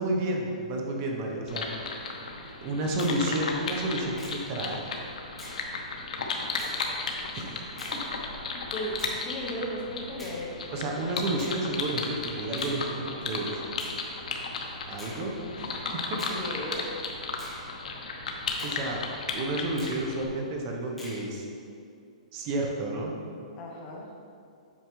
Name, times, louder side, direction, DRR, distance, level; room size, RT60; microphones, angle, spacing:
voice 1, 0.0-1.7 2.6-4.8 7.3-7.5 7.9-8.0 10.7-13.6 14.9-16.4 18.6-19.0 19.3-21.4 22.3-23.1, right 1 dB, 30° right, 0 dB, 0.7 m, -31 dB
sound 1, 1.5-20.3, left 3 dB, 80° left, 0.9 m, -35 dB
Finger snapping, 3.0-3.2 4.2-4.4 5.4-5.6 6.6-6.8 7.8-8.0 9.0-9.2 10.2-10.4 11.4-11.6 12.6-12.8 13.8-14.0 15.0-15.2 16.2-16.4 17.4-17.6 18.6-18.8 19.8-20.0 21.0-21.2, left 1 dB, 5° left, 1.3 m, -44 dB
voice 2, 8.7-10.6 16.4-16.9 23.6-24.1, equal, 25° left, -1 dB, 0.7 m, -35 dB
8.1 x 5.3 x 3.1 m, 2.4 s
hypercardioid pair, 170°, 4 cm